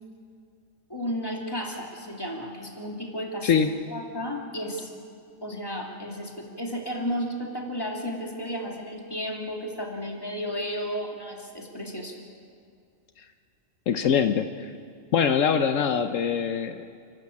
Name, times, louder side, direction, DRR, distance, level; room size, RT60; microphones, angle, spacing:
voice 1, 0.9-3.5 3.9-4.9 5.4-12.2, equal, 20° left, 0 dB, 2.8 m, -33 dB
voice 2, 13.9-14.7 15.1-16.9, left 7 dB, 75° left, 8 dB, 1.1 m, -23 dB
29.5 x 12.5 x 8.6 m, 2.3 s
omnidirectional pair, 1.3 m